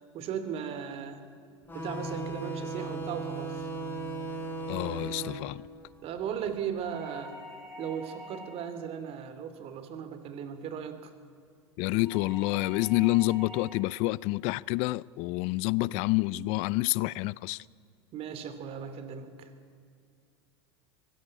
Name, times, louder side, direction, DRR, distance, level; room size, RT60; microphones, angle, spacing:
voice 1, 0.1-1.2 1.7-3.7 6.0-7.3 7.8-11.1 18.1-19.5, right 8 dB, 45° right, 2.6 m, -37 dB
sound 1, 1.7-6.8, right 2 dB, 15° left, 4.7 m, -37 dB
voice 2, 4.7-5.6 11.8-17.7, left 21 dB, 50° left, 0.5 m, -28 dB
sound 2, 6.8-8.8 12.0-13.8, left 1 dB, ahead, 7.1 m, -46 dB
23.5 x 16.5 x 8.4 m
hypercardioid pair, 90°, 14 cm